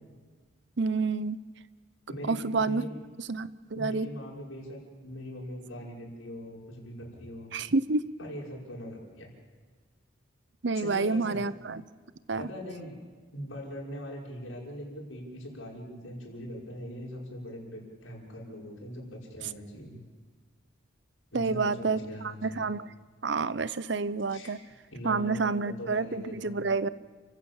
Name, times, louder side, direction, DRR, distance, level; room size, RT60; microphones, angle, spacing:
voice 1, 0.8-1.4 2.3-2.8 3.3-3.5 3.8-4.1 7.5-8.0 10.6-11.8 12.3-12.5 21.3-22.0 22.4-22.9 23.2-24.6 25.0-26.9, right 3 dB, 60° right, 16 dB, 0.7 m, -28 dB
voice 2, 2.1-3.0 3.7-7.6 8.2-9.3 10.8-11.4 12.4-13.0 13.3-20.0 21.3-22.7 24.3-24.5 24.9-26.6, equal, 85° left, -2 dB, 6.1 m, -41 dB
29.5 x 15.5 x 7.3 m, 1.5 s
head